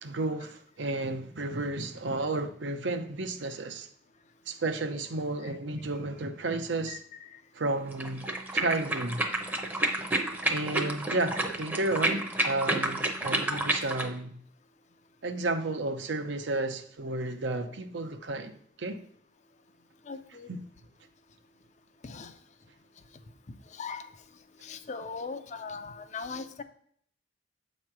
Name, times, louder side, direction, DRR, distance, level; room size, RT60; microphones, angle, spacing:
voice 1, 0.0-3.9 4.5-7.0 7.5-9.2 10.5-14.4 15.2-18.5 18.8-19.0 20.5-20.6, right 2 dB, 70° right, 0.7 m, -32 dB
sound 1, 7.9-14.1, right 1 dB, 10° right, 0.7 m, -30 dB
voice 2, 20.1-20.5 22.0-22.3 23.7-24.1 24.6-26.6, left 5 dB, 40° left, 0.5 m, -39 dB
7.7 x 3.1 x 5.9 m
head